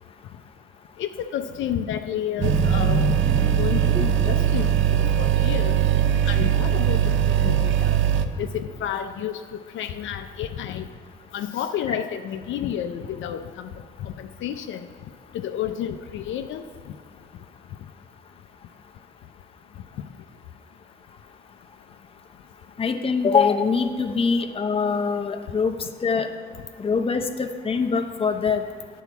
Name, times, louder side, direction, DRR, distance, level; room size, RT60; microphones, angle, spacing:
voice 1, 1.0-5.8 6.3-7.0 7.3-8.0 8.4-9.4 9.7-10.9 11.3-13.7 14.0-14.8 15.3-16.6, left 9 dB, 75° left, 8 dB, 0.5 m, -30 dB
sound 1, 2.4-9.0, right 2 dB, 15° right, 0.4 m, -33 dB
sound 2, 2.4-8.2, right 10 dB, 75° right, 0.6 m, -21 dB
voice 2, 22.8-25.8 26.0-26.3 26.8-28.6, left 5 dB, 30° left, 5 dB, 0.7 m, -23 dB
9.3 x 4.6 x 7.0 m, 2.2 s
cardioid pair, 90°, 20 cm